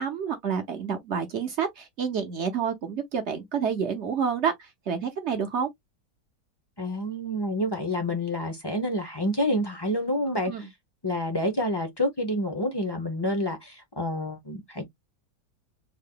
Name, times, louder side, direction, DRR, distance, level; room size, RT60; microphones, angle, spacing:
voice 1, 0.0-5.7 10.5-10.7, right 6 dB, 55° right, 0.8 m, -29 dB
voice 2, 6.8-10.7 11.0-14.8, left 1 dB, 25° left, 0.6 m, -28 dB
3.7 x 2.0 x 3.7 m
omnidirectional pair, 1.8 m